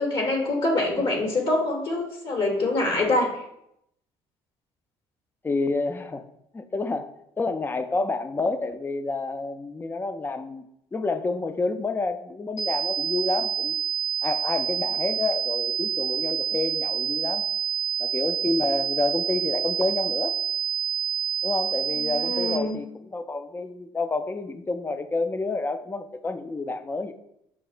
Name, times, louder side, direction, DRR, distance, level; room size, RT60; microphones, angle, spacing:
voice 1, 0.0-3.4 22.0-22.8, left 2 dB, 50° left, 1 dB, 0.9 m, -25 dB
voice 2, 5.4-6.3 6.5-7.1 7.4-10.6 10.9-13.8 14.2-17.5 18.0-20.4 21.4-27.1, left 3 dB, 20° left, 9 dB, 0.4 m, -29 dB
sound 1, 12.6-22.6, right 9 dB, 90° left, 0.6 m, -28 dB
5.9 x 2.0 x 2.4 m, 0.79 s
supercardioid pair, 70°, 11 cm